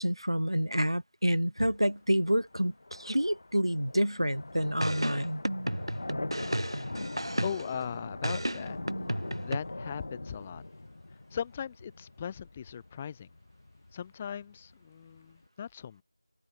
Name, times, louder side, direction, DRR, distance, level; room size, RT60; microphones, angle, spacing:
voice 1, 0.0-5.4, equal, 85° right, 1.4 m, -28 dB
sound 1, 1.6-15.5, left 2 dB, 30° left, 4.0 m, -43 dB
sound 2, 4.8-7.8 8.2-9.6, right 1 dB, 65° right, 1.5 m, -33 dB
voice 2, 7.4-8.8 9.4-10.6 11.3-13.3 13.9-16.0, left 8 dB, 10° left, 1.3 m, -38 dB
open air
figure-of-eight pair, 175°, 3 cm